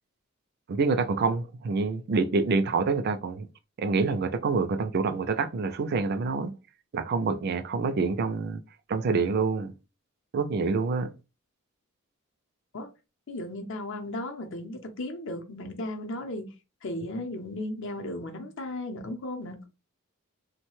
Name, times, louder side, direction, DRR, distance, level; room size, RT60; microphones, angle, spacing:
voice 1, 0.7-3.5 3.8-6.5 6.9-8.6 8.9-9.7 10.3-11.1, right 4 dB, 45° right, 0.3 m, -27 dB
voice 2, 13.3-16.5 16.8-19.7, left 1 dB, 60° left, 0.6 m, -35 dB
3.0 x 2.1 x 3.1 m
head